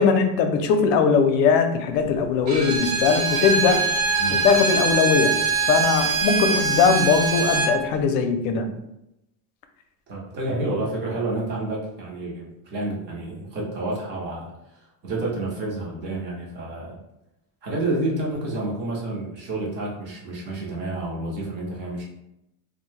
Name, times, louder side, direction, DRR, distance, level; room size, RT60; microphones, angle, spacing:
voice 1, 0.0-3.8 4.3-5.3 5.7-8.7, left 5 dB, 70° left, 6 dB, 0.5 m, -20 dB
Bowed string instrument, 2.5-7.8, right 4 dB, 50° right, 0.8 m, -23 dB
voice 2, 10.1-17.0 17.6-22.0, right 2 dB, 25° right, -3 dB, 0.5 m, -29 dB
2.6 x 2.1 x 3.1 m, 0.86 s
cardioid pair, 175°, 44 cm